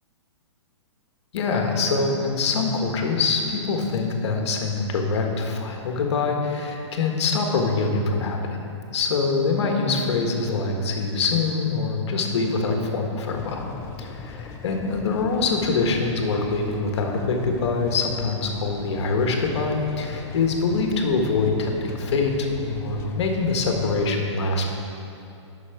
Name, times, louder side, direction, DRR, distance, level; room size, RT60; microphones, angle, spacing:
voice 1, 1.3-8.4 8.9-13.6 14.0-24.6, left 4 dB, 60° left, 2 dB, 1.4 m, -24 dB
sound 1, 13.3-24.1, left 5 dB, 15° left, 0.4 m, -40 dB
8.5 x 6.1 x 5.8 m, 2.7 s
hypercardioid pair, 145°, 16 cm